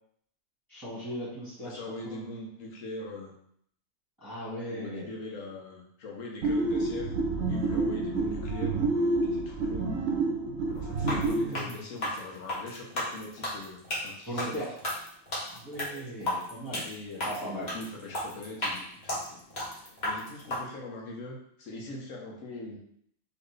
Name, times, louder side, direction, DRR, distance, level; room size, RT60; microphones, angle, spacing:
voice 1, 0.7-2.3 4.2-5.1 11.0-11.8 14.2-14.7 15.5-16.8 17.2-17.7, equal, 15° right, -11 dB, 1.5 m, -38 dB
voice 2, 1.6-3.3 4.7-7.1 7.5-9.9 10.7-13.8 14.0-14.6 16.8-19.5 19.8-22.8, left 2 dB, 70° left, -1 dB, 1.2 m, -41 dB
sound 1, 6.4-11.5, right 3 dB, 55° right, 0.9 m, -28 dB
sound 2, 11.0-20.6, left 1 dB, 35° left, 1.2 m, -34 dB
4.2 x 3.1 x 3.2 m, 0.66 s
omnidirectional pair, 1.4 m